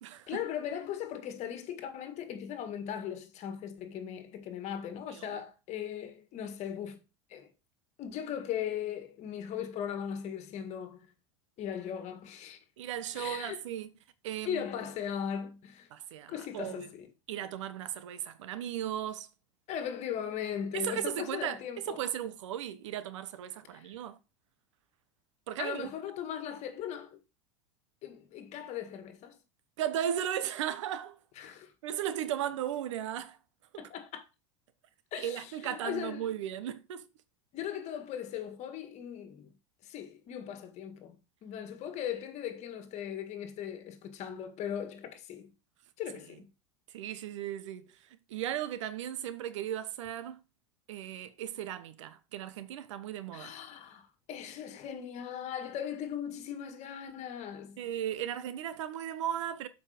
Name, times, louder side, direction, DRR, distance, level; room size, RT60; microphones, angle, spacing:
voice 1, 0.3-7.0 7.3-7.5 8.0-11.1 11.6-12.6 13.1-13.6 14.4-15.9 16.3-17.1 19.7-22.0 23.7-23.9 25.6-27.2 28.0-29.4 31.4-31.7 33.8-34.2 35.1-36.3 37.5-39.5 39.8-45.5 46.0-46.5 53.3-57.8, left 9 dB, 45° left, 1.9 m, -38 dB
voice 2, 12.8-13.9 14.2-14.7 15.9-16.9 17.3-19.3 20.7-21.6 21.9-24.2 25.5-25.9 29.8-31.2 31.8-33.4 33.7-33.9 35.2-37.0 46.9-47.9 48.3-50.4 50.9-53.5 57.8-59.7, right 10 dB, 80° right, 1.0 m, -36 dB
7.3 x 5.4 x 5.1 m
hypercardioid pair, 100°, 15 cm